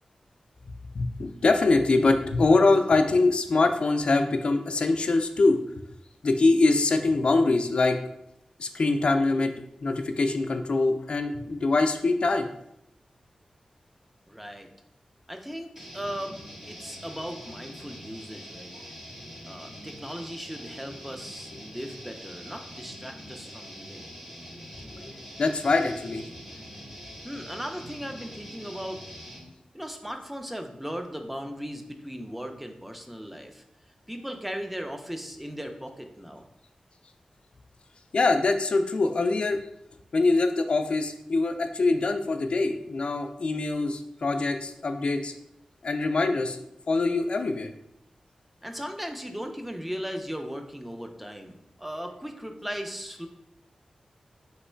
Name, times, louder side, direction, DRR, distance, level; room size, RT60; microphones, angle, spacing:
voice 1, 0.9-5.6 6.2-8.0 8.6-9.5 9.8-12.5 24.9-25.1 25.4-26.2 38.1-39.6 40.1-45.3 45.8-46.6 46.9-47.7, left 3 dB, 55° left, 6 dB, 0.3 m, -23 dB
voice 2, 14.3-14.7 15.3-16.4 16.7-18.7 19.4-24.1 26.6-29.0 29.7-33.6 34.1-36.5 48.6-53.3, equal, 5° right, 5 dB, 0.5 m, -37 dB
sound 1, 15.7-29.5, equal, 20° right, 1.0 m, -44 dB
3.2 x 3.0 x 4.4 m, 0.79 s
wide cardioid pair, 105°, 2 cm